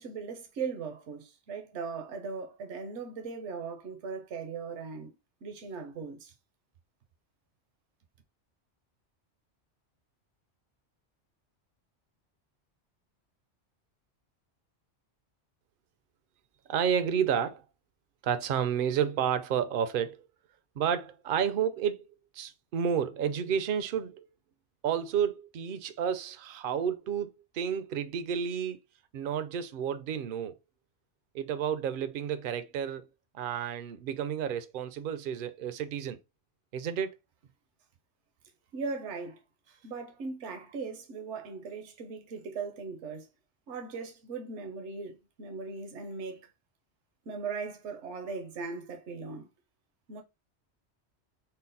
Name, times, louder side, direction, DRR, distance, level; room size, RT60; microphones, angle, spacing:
voice 1, 0.0-5.1 5.4-6.3 38.7-43.3 43.7-46.5 47.3-49.5 50.1-50.2, right 4 dB, 80° right, 1.1 m, -39 dB
voice 2, 16.7-17.6 18.2-20.3 20.8-22.1 22.3-24.3 24.8-28.8 29.1-30.6 31.3-33.0 33.3-36.2 36.7-37.2, right 8 dB, 60° right, 0.6 m, -31 dB
3.8 x 2.1 x 3.8 m
omnidirectional pair, 1.2 m